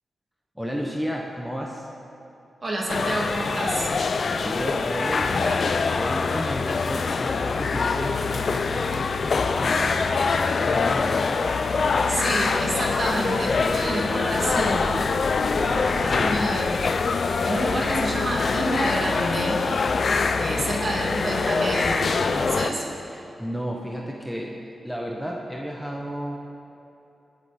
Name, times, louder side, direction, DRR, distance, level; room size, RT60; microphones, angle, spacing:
voice 1, 0.6-1.9 4.3-10.1 10.4-11.2 15.5-16.8 20.4-20.7 23.1-26.4, equal, ahead, -1 dB, 1.1 m, -33 dB
voice 2, 2.6-3.9 12.1-15.0 16.0-16.9 17.4-19.6 20.4-22.8, right 1 dB, 45° right, -3 dB, 2.7 m, -28 dB
sound 1, 2.9-22.7, left 4 dB, 60° left, 0.5 m, -24 dB
sound 2, 13.2-18.2, left 1 dB, 75° left, 3.2 m, -42 dB
21.0 x 8.3 x 4.4 m, 2.9 s
cardioid pair, 85°, 0 cm